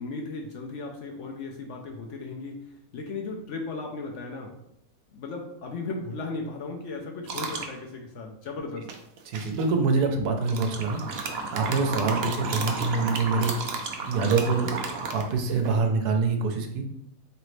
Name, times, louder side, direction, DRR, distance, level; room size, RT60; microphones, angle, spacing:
voice 1, 0.0-4.6 5.1-8.9, left 3 dB, 65° left, 1 dB, 0.8 m, -36 dB
sound 1, 7.3-7.7 8.9-9.6 10.4-15.8, right 4 dB, 65° right, 0.6 m, -32 dB
voice 2, 9.3-14.7 15.1-16.8, right 4 dB, 90° right, 4 dB, 1.2 m, -26 dB
3.9 x 3.3 x 3.1 m, 0.80 s
omnidirectional pair, 1.6 m